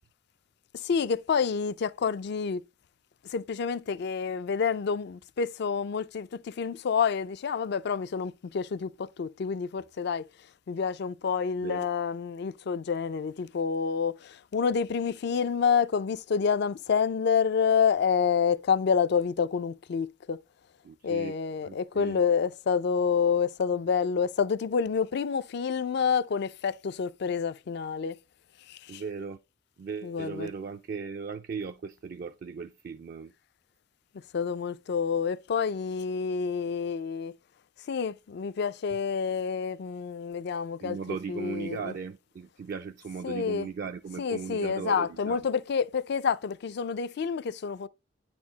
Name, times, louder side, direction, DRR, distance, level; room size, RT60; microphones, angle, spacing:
voice 1, 0.7-2.6 3.2-10.2 10.7-20.4 21.0-28.2 28.7-29.0 30.0-30.5 34.3-37.3 37.9-41.9 43.2-43.7 44.1-47.9, left 6 dB, 60° left, 0.4 m, -28 dB
voice 2, 20.8-21.4 21.6-22.2 28.9-29.4 29.8-33.3 40.8-45.4, right 5 dB, 50° right, 0.3 m, -37 dB
9.3 x 4.3 x 2.8 m
head